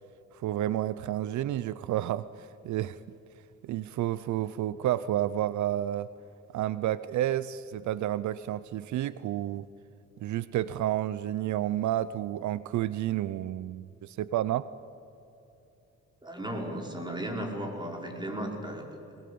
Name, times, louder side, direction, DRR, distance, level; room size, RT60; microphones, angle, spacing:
voice 1, 0.3-3.0 3.6-6.1 6.5-9.7 10.2-14.7, right 13 dB, 70° right, 16 dB, 0.6 m, -30 dB
voice 2, 16.2-18.8, right 1 dB, 15° right, 1 dB, 5.0 m, -35 dB
22.5 x 20.5 x 8.6 m, 2.9 s
cardioid pair, 90°, 30 cm